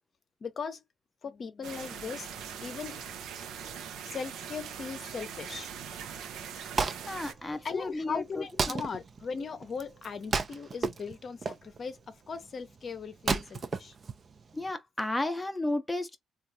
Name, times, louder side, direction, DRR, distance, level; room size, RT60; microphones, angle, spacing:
voice 1, 0.4-0.8 1.2-3.0 4.0-5.7 7.6-13.9 15.2-15.3, left 5 dB, 50° left, 0.7 m, -38 dB
sound 1, 1.6-7.3, right 7 dB, 80° right, 0.6 m, -41 dB
Wood, 6.4-14.7, right 4 dB, 40° right, 0.5 m, -35 dB
voice 2, 7.0-8.8 14.5-16.2, left 2 dB, 10° left, 0.6 m, -33 dB
3.2 x 2.4 x 2.7 m
cardioid pair, 90°, 0 cm